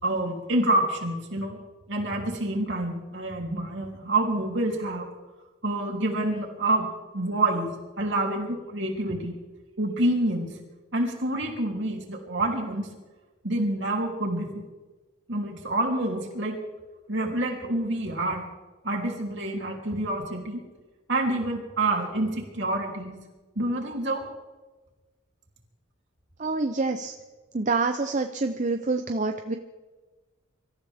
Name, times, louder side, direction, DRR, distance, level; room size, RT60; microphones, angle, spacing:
voice 1, 0.0-1.6 1.9-5.1 5.6-6.8 7.1-7.7 8.0-9.3 9.8-10.5 10.9-12.9 13.4-14.6 15.3-16.5 17.1-18.5 18.8-20.6 21.1-23.2 23.5-24.2, right 2 dB, 60° right, 0 dB, 3.3 m, -27 dB
voice 2, 26.4-27.1 27.5-29.6, right 3 dB, 35° right, 6 dB, 0.7 m, -27 dB
25.0 x 14.0 x 3.6 m, 1.2 s
head